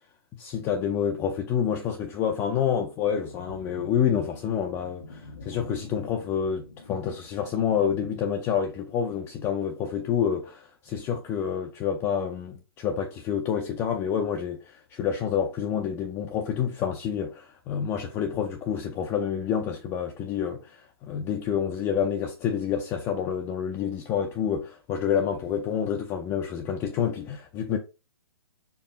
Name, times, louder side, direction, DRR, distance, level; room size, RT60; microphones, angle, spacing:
voice 1, 0.4-27.8, left 8 dB, 20° left, 0.5 m, -28 dB
sound 1, 3.0-8.2, left 2 dB, 70° left, 1.4 m, -46 dB
4.6 x 2.7 x 4.0 m
hypercardioid pair, 130°, 13 cm